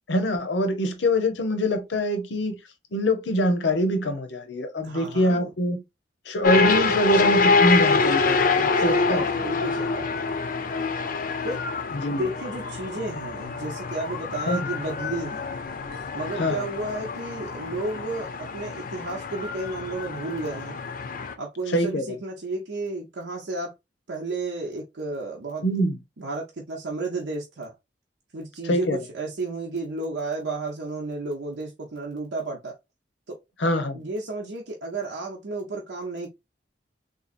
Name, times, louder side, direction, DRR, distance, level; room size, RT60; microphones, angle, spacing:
voice 1, 0.1-2.6 2.9-5.8 6.3-9.2 11.9-12.3 14.5-14.7 16.4-16.6 21.7-22.0 25.6-26.0 28.7-29.0 33.6-34.0, equal, 80° left, 0.8 m, -24 dB
voice 2, 4.8-5.5 8.7-10.1 11.4-11.6 12.1-15.4 16.1-20.8 21.4-23.7 24.1-25.6 26.2-27.7 28.3-32.7 33.3-33.4 33.9-36.3, right 2 dB, 85° right, 0.7 m, -32 dB
sound 1, 6.4-21.3, left 4 dB, 50° left, 0.5 m, -26 dB
3.8 x 2.8 x 2.5 m
head